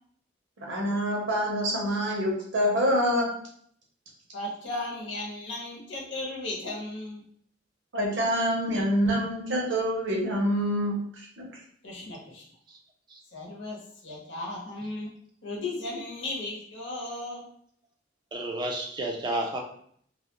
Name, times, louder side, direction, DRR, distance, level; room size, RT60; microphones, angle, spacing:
voice 1, 0.6-3.3 7.9-11.0 11.4-11.5, equal, 85° right, -2 dB, 0.8 m, -26 dB
voice 2, 4.3-7.2 11.8-12.4 13.3-15.1 15.4-17.4, left 2 dB, 75° left, -2 dB, 0.8 m, -36 dB
voice 3, 18.3-19.6, right 1 dB, 25° right, 1 dB, 0.4 m, -31 dB
2.3 x 2.0 x 2.9 m, 0.63 s
head